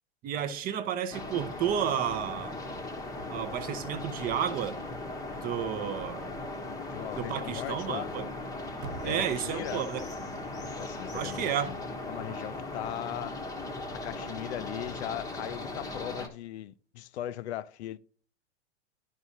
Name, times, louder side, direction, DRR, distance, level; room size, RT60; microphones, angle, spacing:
voice 1, 0.2-2.6 3.3-4.8 5.4-6.3 7.2-8.3 9.0-10.0 11.1-11.7, right 9 dB, 25° right, 0.5 m, -32 dB
sound 1, 1.1-16.3, left 2 dB, 10° left, 0.8 m, -38 dB
voice 2, 6.9-8.1 9.0-9.9 10.8-13.4 13.9-18.0, left 12 dB, 75° left, 0.5 m, -38 dB
sound 2, 8.8-11.9, right 5 dB, 60° right, 0.8 m, -47 dB
11.0 x 4.8 x 2.7 m
hypercardioid pair, 115°, 33 cm